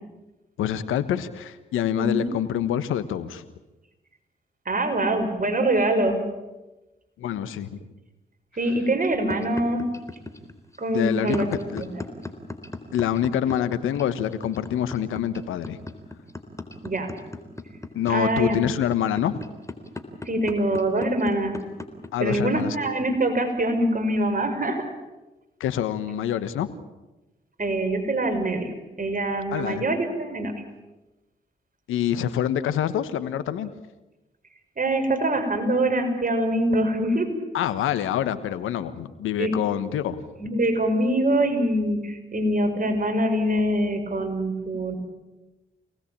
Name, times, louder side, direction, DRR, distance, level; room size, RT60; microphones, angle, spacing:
voice 1, 0.6-3.4 7.2-7.8 10.9-11.5 11.7-11.8 12.9-15.8 17.9-19.3 22.1-22.8 25.6-26.7 29.5-29.8 31.9-33.7 37.5-40.2, left 10 dB, 80° left, 13 dB, 1.3 m, -26 dB
voice 2, 2.0-2.3 4.7-6.2 8.5-9.9 10.8-11.9 16.8-17.1 18.1-18.6 20.2-21.6 22.2-24.8 27.6-30.5 34.8-37.3 39.4-39.5 40.4-45.0, right 1 dB, 40° right, 7 dB, 6.1 m, -24 dB
sound 1, 9.3-23.8, left 2 dB, 15° left, 3.9 m, -36 dB
26.5 x 19.5 x 8.9 m, 1.1 s
hypercardioid pair, 40°, 21 cm